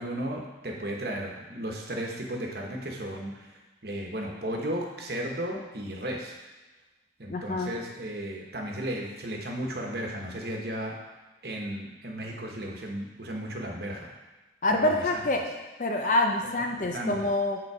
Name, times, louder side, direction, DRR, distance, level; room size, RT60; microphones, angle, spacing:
voice 1, 0.0-6.3 7.2-11.0 11.4-14.1 14.7-15.2 16.4-17.3, right 1 dB, 55° right, 0 dB, 1.2 m, -35 dB
voice 2, 7.3-7.7 14.6-17.6, left 2 dB, 45° left, 2 dB, 0.6 m, -26 dB
9.5 x 3.9 x 4.8 m, 1.2 s
head